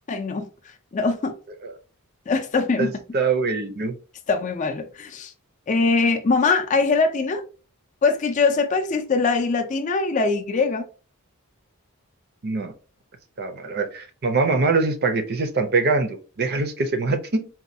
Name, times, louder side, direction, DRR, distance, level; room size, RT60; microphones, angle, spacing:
voice 1, 0.1-0.5 0.9-1.3 2.3-2.9 4.3-5.3 5.7-7.4 8.0-10.8, left 4 dB, 35° left, 0.4 m, -22 dB
voice 2, 2.8-4.0 12.4-12.7 13.4-17.5, right 3 dB, 45° right, 0.5 m, -23 dB
4.1 x 2.2 x 2.6 m
head